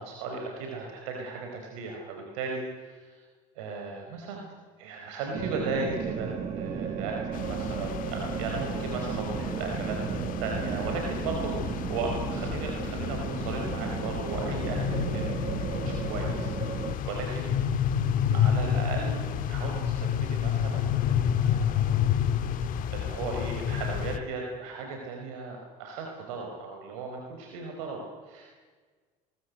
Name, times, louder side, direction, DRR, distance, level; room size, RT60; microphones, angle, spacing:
voice 1, 0.0-3.3 3.5-4.5 4.8-10.0 10.4-17.6 18.3-22.0 22.5-22.6 22.9-28.6, right 4 dB, 85° right, 1 dB, 4.6 m, -36 dB
sound 1, 5.3-17.0, right 7 dB, 40° right, 1.8 m, -34 dB
sound 2, 7.3-24.2, left 9 dB, 55° left, 1.8 m, -30 dB
22.0 x 21.0 x 8.3 m, 1.5 s
supercardioid pair, 110°, 17 cm